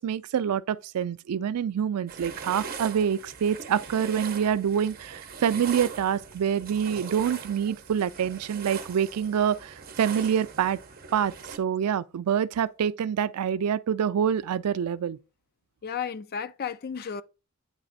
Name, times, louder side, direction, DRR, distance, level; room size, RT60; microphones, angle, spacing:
voice 1, 0.0-10.8 11.1-15.2, right 8 dB, 90° right, 0.4 m, -26 dB
sound 1, 2.1-11.6, right 5 dB, 45° right, 0.9 m, -41 dB
voice 2, 15.8-17.2, left 7 dB, 45° left, 0.4 m, -33 dB
8.8 x 3.3 x 4.0 m
head